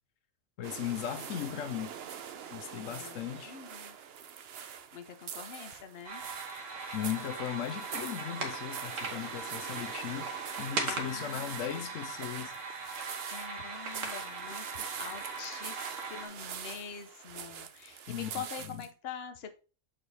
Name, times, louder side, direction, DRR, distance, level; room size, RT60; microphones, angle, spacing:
voice 1, 0.6-1.9 2.5-3.6 6.9-10.3 10.6-12.6 18.1-18.8, left 10 dB, 80° left, 1.0 m, -37 dB
sound 1, 0.6-18.9, right 8 dB, 60° right, 0.8 m, -44 dB
voice 2, 2.8-4.0 4.9-6.2 10.9-11.7 13.3-19.5, left 7 dB, 55° left, 1.0 m, -45 dB
sound 2, 6.0-16.3, right 4 dB, 80° right, 1.6 m, -39 dB
7.1 x 4.5 x 3.4 m
omnidirectional pair, 1.3 m